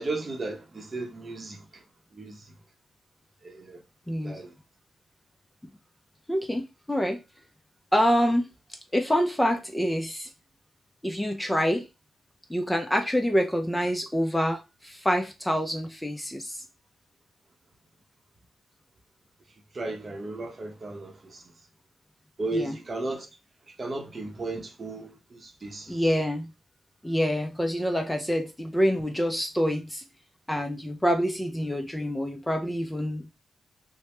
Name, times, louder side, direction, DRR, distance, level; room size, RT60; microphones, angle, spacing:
voice 1, 0.0-1.8 2.1-2.4 3.4-3.8 4.2-4.5 19.7-21.4 22.4-23.3 23.8-26.0, right 2 dB, 40° right, 0.7 m, -35 dB
voice 2, 4.1-4.4 6.3-7.2 7.9-8.5 8.9-10.3 11.0-11.9 12.5-16.6 22.5-22.8 25.9-26.5 27.0-30.0 30.5-33.3, equal, 10° left, 0.3 m, -26 dB
2.8 x 2.0 x 3.1 m
cardioid pair, 90°, 0 cm